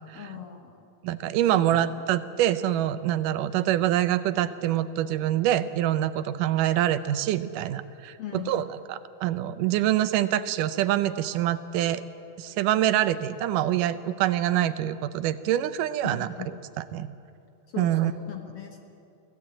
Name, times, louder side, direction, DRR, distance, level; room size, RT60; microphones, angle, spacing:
voice 1, 0.1-0.9 1.5-2.1 8.2-8.6 16.0-16.6 17.7-18.8, left 7 dB, 60° left, 3 dB, 1.7 m, -39 dB
voice 2, 1.0-8.1 8.5-12.0 12.4-16.3 16.9-17.1 17.8-18.1, right 12 dB, 80° right, 13 dB, 2.2 m, -25 dB
23.5 x 16.0 x 8.7 m, 2.6 s
omnidirectional pair, 3.9 m